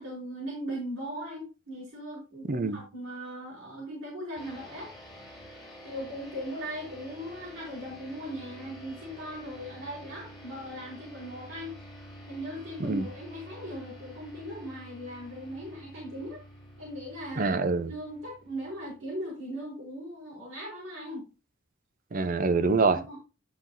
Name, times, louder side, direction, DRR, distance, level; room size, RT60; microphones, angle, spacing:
voice 1, 0.0-4.9 5.8-11.8 12.3-16.4 16.8-17.6 17.8-21.3 22.9-23.2, equal, 80° right, 4.1 m, -39 dB
voice 2, 2.5-2.8 12.8-13.1 17.4-17.9 22.1-23.0, right 3 dB, 40° right, 0.6 m, -25 dB
sound 1, 4.4-19.2, equal, ahead, 3.2 m, -48 dB
9.6 x 5.9 x 2.6 m
head